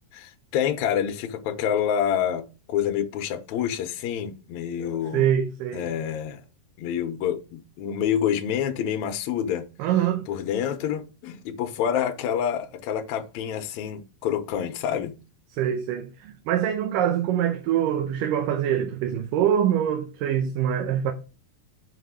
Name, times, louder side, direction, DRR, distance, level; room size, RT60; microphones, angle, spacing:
voice 1, 0.1-5.3 5.7-6.4 6.8-9.7 10.3-15.2, left 9 dB, 70° left, 2.0 m, -27 dB
voice 2, 5.1-5.9 9.8-10.3 15.5-21.1, right 10 dB, 80° right, 2.3 m, -24 dB
5.9 x 5.2 x 5.0 m
omnidirectional pair, 3.9 m